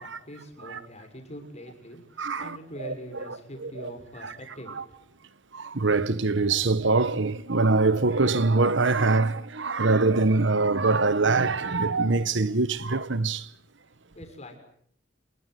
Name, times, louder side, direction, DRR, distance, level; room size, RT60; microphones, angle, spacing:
voice 1, 0.0-5.0 14.1-14.6, equal, 35° left, 6.8 m, -43 dB
voice 2, 2.2-2.6 2.8-3.2 3.6-3.9 4.2-4.3 4.7-4.8 5.5-13.5, right 3 dB, 65° right, 1.2 m, -24 dB
28.5 x 22.0 x 8.2 m
head